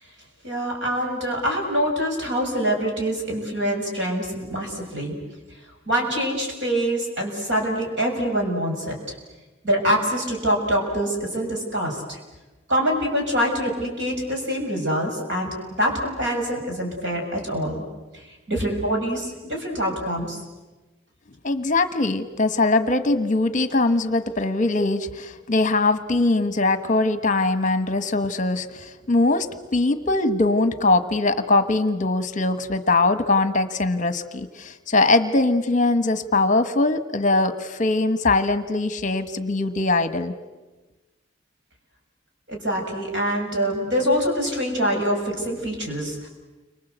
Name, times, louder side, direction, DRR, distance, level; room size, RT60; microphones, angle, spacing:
voice 1, 0.4-5.2 5.9-9.0 9.6-12.2 12.7-15.5 15.8-17.8 18.1-20.4 42.5-46.3, equal, 60° right, 1 dB, 6.6 m, -25 dB
voice 2, 21.4-40.3, left 2 dB, 40° left, 10 dB, 1.2 m, -21 dB
30.0 x 24.5 x 8.1 m, 1.2 s
head